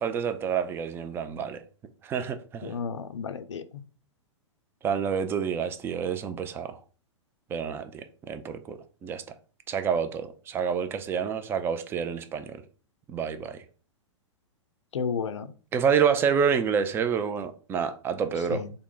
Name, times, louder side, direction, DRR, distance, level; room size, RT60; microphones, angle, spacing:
voice 1, 0.0-1.6 2.0-2.8 4.8-6.8 7.5-9.2 9.7-12.6 13.1-13.6 15.7-18.6, right 7 dB, 15° right, 0.3 m, -28 dB
voice 2, 2.6-3.8 14.9-15.5 18.5-18.7, left 6 dB, 70° left, 0.5 m, -32 dB
3.8 x 2.1 x 3.8 m
figure-of-eight pair, 110°, 16 cm